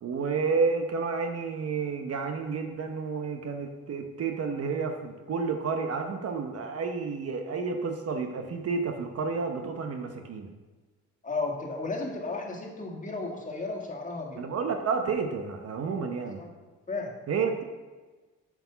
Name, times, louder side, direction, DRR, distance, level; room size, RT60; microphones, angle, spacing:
voice 1, 0.0-10.5 14.4-16.4 17.3-17.6, right 5 dB, 55° right, 5 dB, 0.9 m, -30 dB
voice 2, 11.2-14.4 16.4-16.5 16.9-17.2, left 3 dB, 25° left, 0 dB, 1.7 m, -34 dB
7.6 x 4.8 x 5.6 m, 1.3 s
cardioid pair, 90°, 30 cm